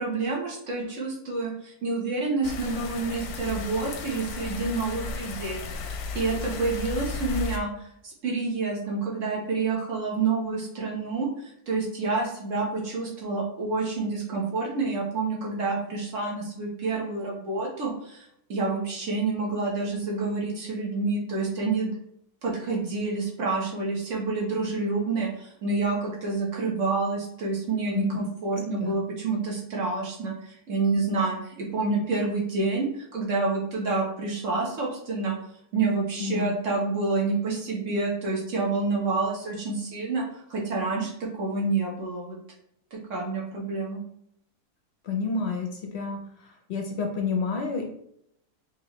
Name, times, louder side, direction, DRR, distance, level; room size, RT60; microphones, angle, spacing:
voice 1, 0.0-5.6 6.1-7.7 8.0-21.9 22.4-35.3 35.7-42.4 42.9-44.0, right 3 dB, 55° right, -2 dB, 1.3 m, -28 dB
sound 1, 2.4-7.6, left 4 dB, 90° left, 1.1 m, -34 dB
voice 2, 36.2-36.5 45.0-47.8, left 5 dB, 60° left, 2 dB, 0.7 m, -29 dB
4.4 x 2.9 x 3.0 m, 0.74 s
omnidirectional pair, 1.6 m